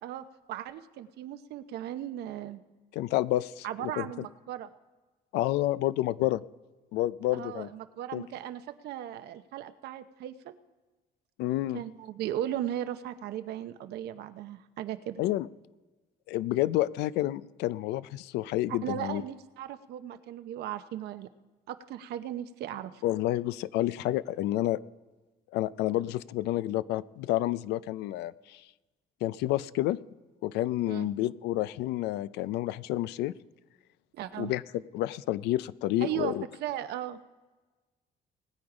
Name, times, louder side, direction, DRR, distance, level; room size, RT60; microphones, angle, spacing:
voice 1, 0.0-2.6 3.6-4.7 7.3-10.5 11.7-15.2 18.7-21.3 21.7-23.0 30.9-31.1 34.1-34.5 36.0-37.2, right 11 dB, 75° right, 10 dB, 0.8 m, -37 dB
voice 2, 2.9-4.3 5.3-6.4 6.9-7.7 8.1-8.2 11.4-11.8 15.2-15.5 16.3-19.2 23.0-24.8 25.5-28.6 29.2-30.0 30.4-33.3 34.4-34.6 34.9-36.4, left 15 dB, 85° left, 17 dB, 0.4 m, -29 dB
20.0 x 8.8 x 4.9 m, 1.2 s
cardioid pair, 110°, 17 cm